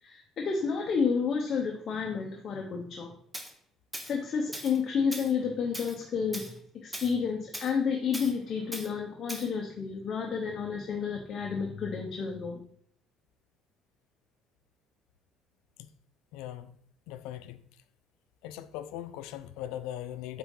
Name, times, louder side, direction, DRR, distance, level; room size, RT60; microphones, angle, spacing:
voice 1, 0.0-3.1 4.0-12.6, left 6 dB, 35° left, 0.8 m, -31 dB
Tools, 3.3-3.5 3.9-4.1 4.5-4.8 5.1-5.3 5.7-6.0 6.3-6.5 6.9-7.1 7.5-7.7 8.1-8.3 8.7-8.9 9.3-9.5, right 1 dB, 5° right, 0.8 m, -39 dB
voice 2, 16.3-16.7 17.1-17.6 18.4-20.4, left 12 dB, 90° left, 0.5 m, -39 dB
8.5 x 3.6 x 3.9 m
cardioid pair, 155°, 0 cm